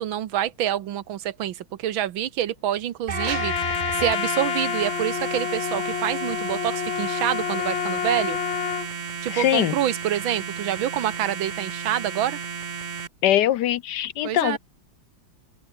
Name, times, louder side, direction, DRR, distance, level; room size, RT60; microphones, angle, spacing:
voice 1, 0.0-8.4 9.2-12.4 14.2-14.6, right 11 dB, 85° right, 1.8 m, -27 dB
sound 1, 2.4-11.3, right 2 dB, 65° right, 8.7 m, -64 dB
Trumpet, 3.1-8.9, left 11 dB, 85° left, 1.9 m, -28 dB
sound 2, 3.1-13.1, right 6 dB, 50° right, 0.5 m, -33 dB
voice 2, 9.3-9.7 13.2-14.6, left 12 dB, 70° left, 1.1 m, -22 dB
open air
omnidirectional pair, 2.1 m